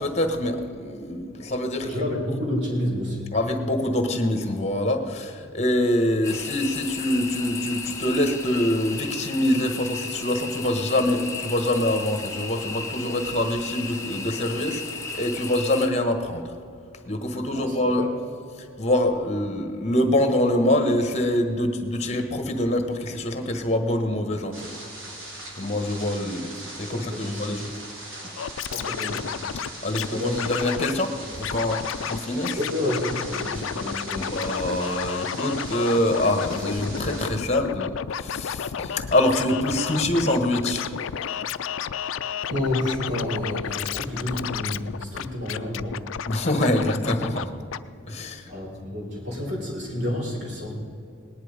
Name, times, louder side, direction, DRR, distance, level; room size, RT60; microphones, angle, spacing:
voice 1, 0.0-1.9 3.3-14.8 15.1-16.5 17.1-18.2 18.8-24.7 25.6-27.7 29.8-32.6 34.1-40.9 46.3-47.5 48.1-48.5, left 1 dB, 35° left, 6 dB, 1.4 m, -25 dB
voice 2, 1.8-3.3 17.5-18.1 26.9-27.4 28.7-29.4 30.1-30.5 32.5-34.4 42.4-46.1 46.4-47.1 48.5-50.7, left 1 dB, 60° right, -2 dB, 4.1 m, -30 dB
sound 1, 6.2-15.9, left 4 dB, 15° left, 1.0 m, -35 dB
sound 2, 24.5-37.3, right 1 dB, 85° right, 3.1 m, -40 dB
Scratching (performance technique), 28.4-30.1 30.4-31.0 31.4-32.2 32.4-47.5 47.7-47.8, left 8 dB, 80° left, 0.4 m, -31 dB
19.0 x 10.5 x 5.1 m, 2.5 s
head